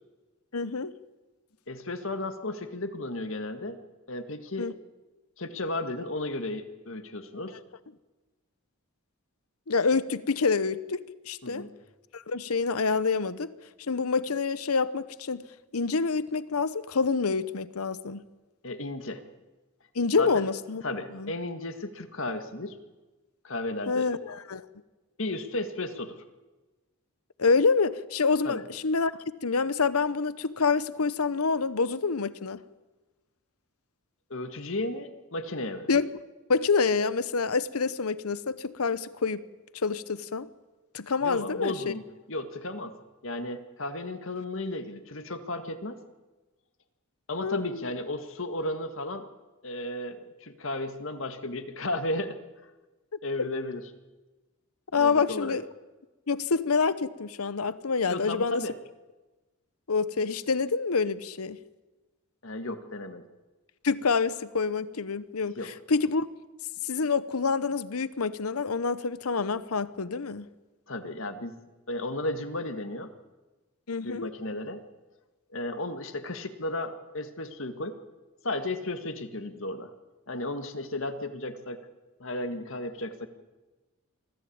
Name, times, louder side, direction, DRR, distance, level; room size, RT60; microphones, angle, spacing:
voice 1, 0.5-0.9 4.6-4.7 9.7-11.0 11.3-11.6 12.1-13.5 13.9-15.4 15.7-18.2 19.9-20.8 21.1-21.3 23.9-24.6 27.4-29.1 29.4-32.6 35.9-36.1 36.5-39.4 39.7-40.5 40.9-41.9 47.4-47.8 54.9-55.6 56.3-58.6 59.9-61.6 63.8-66.3 66.8-70.5 73.9-74.3, left 4 dB, 90° left, 16 dB, 0.9 m, -27 dB
voice 2, 1.7-3.8 4.1-4.7 5.4-7.6 11.4-11.7 18.6-19.2 20.2-20.3 20.8-22.8 23.4-24.1 25.2-26.2 28.4-28.6 34.3-35.9 41.2-42.0 42.3-42.9 43.2-46.0 47.3-49.3 49.6-52.4 53.2-53.8 55.0-55.6 58.1-58.7 62.4-63.3 65.6-65.7 70.9-71.6 71.9-73.1 74.0-74.8 75.5-78.0 78.4-79.9 80.3-81.8 82.2-83.3, left 2 dB, 65° left, 8 dB, 1.8 m, -34 dB
24.0 x 15.0 x 8.7 m, 1.2 s
head